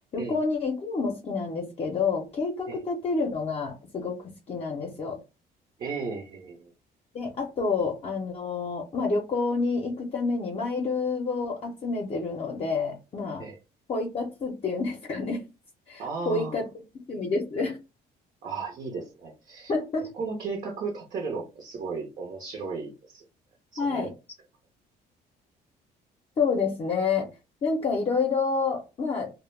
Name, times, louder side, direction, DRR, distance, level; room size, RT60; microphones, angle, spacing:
voice 1, 0.1-4.2 4.5-5.2 7.1-13.4 13.9-15.4 15.9-16.6 17.1-17.8 19.7-20.1 23.8-24.1 26.4-27.3 27.6-29.3, left 4 dB, 35° left, 0 dB, 0.6 m, -28 dB
voice 2, 5.8-6.7 13.4-13.6 16.0-16.6 18.4-19.7 20.2-23.2 23.7-24.1, right 4 dB, 50° right, 1 dB, 0.7 m, -35 dB
2.2 x 2.1 x 3.2 m, 0.29 s
cardioid pair, 110°, 17 cm